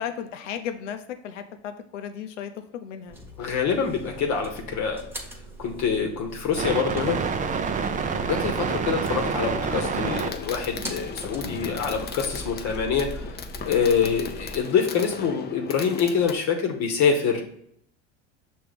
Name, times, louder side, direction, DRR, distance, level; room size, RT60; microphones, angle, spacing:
voice 1, 0.0-3.2, left 8 dB, 85° left, 7 dB, 0.8 m, -35 dB
sound 1, 3.1-14.6, right 2 dB, 5° right, 1.1 m, -40 dB
voice 2, 3.4-5.0 5.6-7.3 8.2-13.4 13.6-17.4, left 6 dB, 50° left, 3 dB, 1.1 m, -25 dB
sound 2, 6.6-10.3 10.6-12.1, right 6 dB, 20° right, 0.5 m, -28 dB
Fireworks, 6.8-16.3, left 6 dB, 30° left, 0.6 m, -39 dB
6.1 x 3.1 x 5.0 m, 0.70 s
hypercardioid pair, 90°, 36 cm